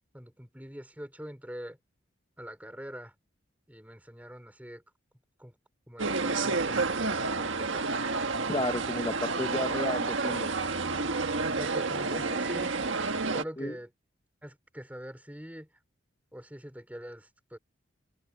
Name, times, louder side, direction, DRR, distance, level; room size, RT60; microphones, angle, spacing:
voice 1, 0.1-1.8 2.4-3.1 3.7-4.8 5.4-5.6 5.9-7.9 11.5-12.8 13.3-13.9 14.4-15.7 16.3-17.6, equal, 10° right, 3.2 m, -43 dB
sound 1, 6.0-13.4, right 3 dB, 70° right, 1.5 m, -30 dB
voice 2, 8.5-10.5 13.6-13.8, left 1 dB, 20° left, 1.0 m, -32 dB
open air
head